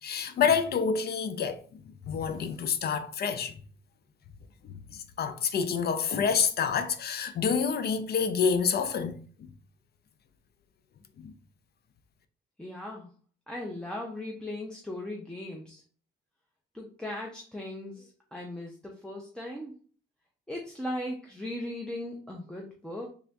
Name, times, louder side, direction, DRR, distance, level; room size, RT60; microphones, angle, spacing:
voice 1, 0.0-3.6 4.6-9.5 11.2-11.3, left 6 dB, 55° left, 0.5 m, -28 dB
voice 2, 12.6-13.1 13.5-15.8 16.7-19.7 20.5-23.1, left 1 dB, 5° left, 0.7 m, -38 dB
3.5 x 2.5 x 3.4 m
cardioid pair, 90°, 20 cm